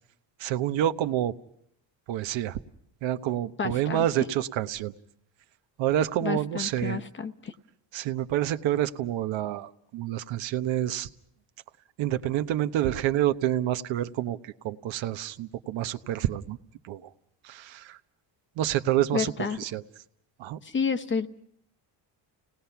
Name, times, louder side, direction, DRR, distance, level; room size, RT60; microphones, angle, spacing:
voice 1, 0.4-1.3 2.1-2.6 3.0-4.9 5.8-7.0 7.9-11.1 12.0-16.6 16.8-17.1 17.4-18.0 18.6-19.8 20.4-20.6, right 12 dB, 80° right, 11 dB, 1.1 m, -28 dB
voice 2, 3.6-4.1 6.2-7.5 19.1-19.6 20.6-21.3, left 5 dB, 25° left, 12 dB, 0.8 m, -30 dB
30.0 x 19.0 x 5.8 m, 0.68 s
cardioid pair, 145°, 44 cm